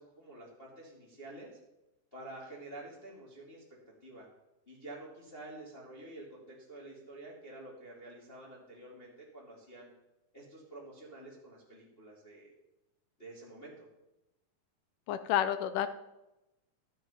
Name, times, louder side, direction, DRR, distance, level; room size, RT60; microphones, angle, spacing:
voice 1, 0.0-1.5 2.1-3.6 4.0-4.3 4.7-9.9 10.3-12.5 13.2-13.9, right 2 dB, 20° left, -4 dB, 1.6 m, -49 dB
voice 2, 15.1-15.9, left 10 dB, 80° left, 12 dB, 2.0 m, -30 dB
12.5 x 7.8 x 5.5 m, 0.95 s
omnidirectional pair, 4.1 m